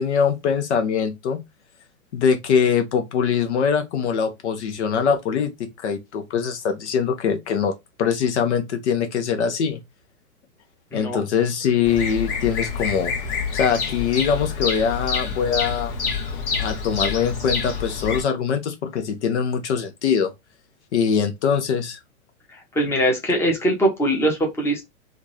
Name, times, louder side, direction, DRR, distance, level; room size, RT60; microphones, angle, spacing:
voice 1, 0.0-1.4 2.1-9.8 10.9-13.1 13.5-15.9 16.6-20.3 20.9-22.0, left 7 dB, 50° left, 0.8 m, -22 dB
voice 2, 10.9-11.2 22.5-24.9, right 1 dB, 5° left, 0.9 m, -22 dB
Bird vocalization bird call bird song, 11.8-18.2, left 5 dB, 30° left, 1.3 m, -27 dB
3.7 x 2.5 x 3.1 m
figure-of-eight pair, 115°, 44 cm